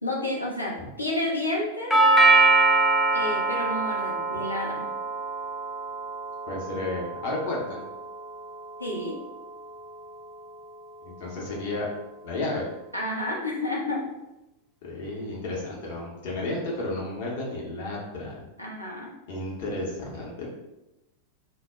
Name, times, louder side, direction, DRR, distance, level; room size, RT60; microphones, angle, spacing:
voice 1, 0.0-1.9 3.1-4.9 8.8-9.1 12.9-14.0 18.6-19.1, left 1 dB, 90° left, -3 dB, 0.6 m, -30 dB
Doorbell, 1.9-10.0, right 3 dB, ahead, 0.3 m, -24 dB
voice 2, 6.5-7.8 11.0-11.9 12.2-12.6 14.8-18.3 19.3-20.5, left 2 dB, 50° left, -3 dB, 0.7 m, -32 dB
2.0 x 2.0 x 3.4 m, 0.94 s
figure-of-eight pair, 90°, 0 cm